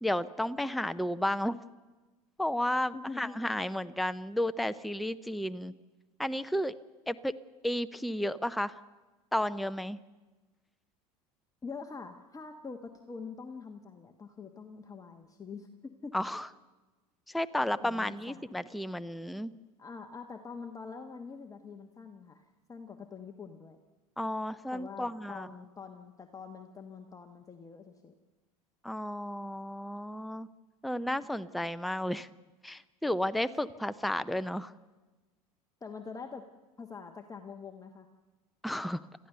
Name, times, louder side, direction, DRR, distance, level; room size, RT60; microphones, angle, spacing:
voice 1, 0.0-1.6 2.4-5.7 6.2-6.7 7.1-7.3 7.6-8.8 9.3-10.0 16.1-16.5 17.3-19.5 24.2-25.5 28.8-30.5 30.8-32.3 32.6-34.7 38.6-39.0, left 1 dB, ahead, 13 dB, 0.6 m, -32 dB
voice 2, 2.9-3.4 11.6-16.1 17.8-18.4 19.8-23.8 24.7-28.1 35.8-36.5 36.8-38.1, left 5 dB, 20° left, 5 dB, 1.3 m, -45 dB
27.5 x 14.5 x 6.8 m, 1.2 s
hypercardioid pair, 80°, 19 cm